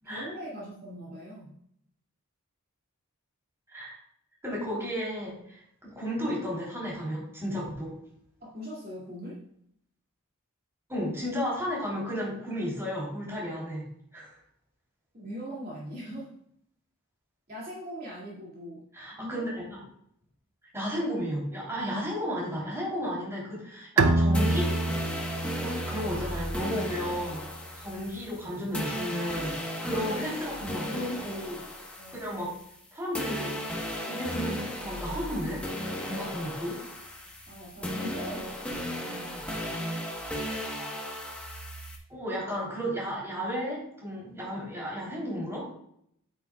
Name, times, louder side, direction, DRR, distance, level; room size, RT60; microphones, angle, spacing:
voice 1, 0.0-1.5 8.4-9.5 15.1-16.3 17.5-18.9 19.2-19.5 30.0-31.0 31.9-32.3 37.5-39.9, equal, 45° right, -6 dB, 2.4 m, -42 dB
voice 2, 4.4-7.9 10.9-13.9 14.1-14.4 18.9-19.8 20.7-24.7 25.6-27.4 27.8-31.7 32.1-32.5 32.9-33.5 34.0-35.6 36.0-36.8 42.1-45.7, equal, 10° right, -5 dB, 3.4 m, -33 dB
Bowed string instrument, 24.0-27.4, right 2 dB, 80° right, 0.6 m, -27 dB
sound 1, 24.3-32.9 33.1-42.0, equal, 5° left, 1.2 m, -36 dB
9.6 x 8.7 x 2.3 m, 0.69 s
head